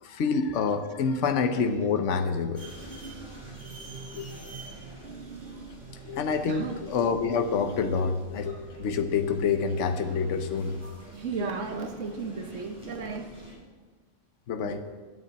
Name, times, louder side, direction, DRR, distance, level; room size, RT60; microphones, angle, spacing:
voice 1, 0.0-2.7 4.1-4.3 6.0-10.8 11.4-11.5 14.5-14.8, left 5 dB, 75° left, 7 dB, 1.2 m, -27 dB
sound 1, 1.0-8.5, right 4 dB, 50° right, 0.8 m, -46 dB
sound 2, 2.5-13.5, right 1 dB, 20° left, 5.4 m, -47 dB
voice 2, 6.5-6.8 11.1-13.3 14.6-14.8, right 5 dB, 90° right, 6 dB, 1.5 m, -34 dB
9.5 x 9.3 x 8.7 m, 1.4 s
omnidirectional pair, 1.2 m